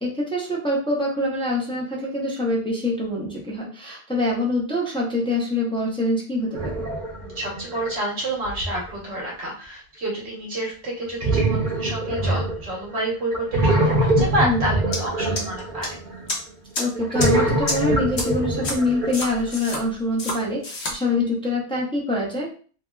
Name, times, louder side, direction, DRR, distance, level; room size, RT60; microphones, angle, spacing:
voice 1, 0.0-6.9 14.4-14.6 16.8-22.5, left 2 dB, 5° left, -4 dB, 0.7 m, -25 dB
sound 1, 6.6-7.9 8.5-8.9 11.2-12.9 13.3-16.2 17.0-19.5, right 1 dB, 55° right, 1.0 m, -23 dB
voice 2, 7.2-15.9, right 1 dB, 90° right, -3 dB, 1.4 m, -29 dB
sound 2, 14.9-15.0 15.4-15.9 16.3-16.4 16.7-16.8 17.2-17.3 17.7-17.8 18.2-18.3 18.6-18.7 19.1-19.8 20.2-20.3 20.6-20.9, left 2 dB, 80° left, 1.1 m, -27 dB
2.9 x 2.8 x 2.3 m, 0.40 s
omnidirectional pair, 1.1 m